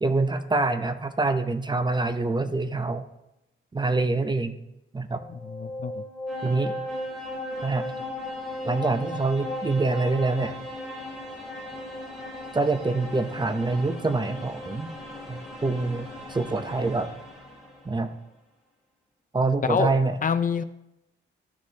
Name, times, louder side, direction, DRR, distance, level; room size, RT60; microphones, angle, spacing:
voice 1, 0.0-3.0 3.7-4.6 4.9-5.2 6.4-6.7 7.6-7.8 8.6-10.6 12.5-14.9 15.3-17.1 17.8-18.1 19.3-20.2, right 3 dB, 20° right, 9 dB, 0.7 m, -25 dB
sound 1, 5.1-17.9, left 1 dB, ahead, 3.4 m, -37 dB
voice 2, 5.3-6.0 19.6-20.6, left 6 dB, 40° left, 12 dB, 0.4 m, -27 dB
14.0 x 6.3 x 2.9 m, 0.86 s
cardioid pair, 100°, 21 cm